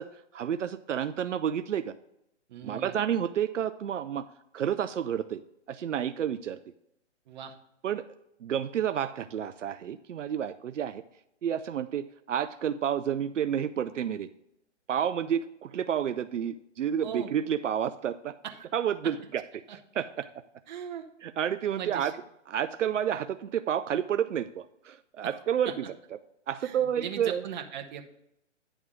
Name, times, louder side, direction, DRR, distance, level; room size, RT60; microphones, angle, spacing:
voice 1, 0.0-1.9 2.6-4.3 4.5-5.4 5.7-6.6 7.8-8.0 8.4-11.0 11.4-14.3 14.9-18.4 18.7-20.3 21.2-22.1 22.5-25.8 26.5-27.4, right 9 dB, 80° right, 11 dB, 0.5 m, -30 dB
voice 2, 2.5-3.0 7.3-7.6 17.0-17.3 18.4-18.7 19.7-19.8 20.7-21.1 21.7-22.1 25.2-25.7 26.6-28.0, right 8 dB, 40° right, 5 dB, 0.9 m, -39 dB
9.9 x 3.6 x 6.1 m, 0.79 s
figure-of-eight pair, 130°, 36 cm